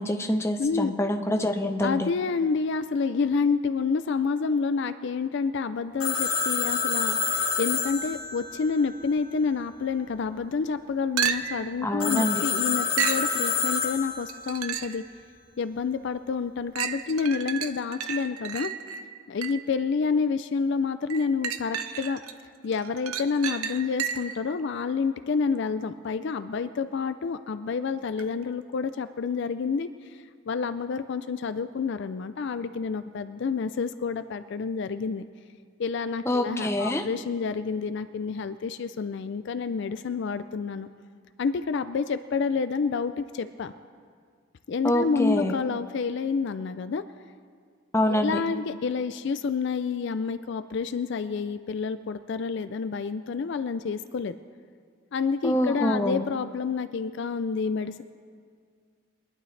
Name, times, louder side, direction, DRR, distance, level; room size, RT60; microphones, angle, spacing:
voice 1, 0.0-2.1 11.8-12.4 36.3-37.0 44.8-45.5 47.9-48.4 55.4-56.2, left 1 dB, 10° left, 4 dB, 0.7 m, -25 dB
voice 2, 0.6-0.9 1.8-15.0 15.6-18.7 19.3-22.2 22.6-35.2 35.8-40.9 41.4-43.7 44.7-47.0 48.1-54.4 55.1-58.0, left 5 dB, 55° left, 11 dB, 0.3 m, -29 dB
Telephone, 6.0-9.6 12.0-14.5, left 6 dB, 80° left, 1.9 m, -28 dB
sound 1, 11.2-11.7 13.0-13.3 14.3-15.0 15.6-15.7 16.7-19.7 21.1-22.3 22.7-24.4 28.2-28.3, right 8 dB, 85° right, 0.7 m, -32 dB
22.5 x 11.5 x 3.3 m, 2.1 s
head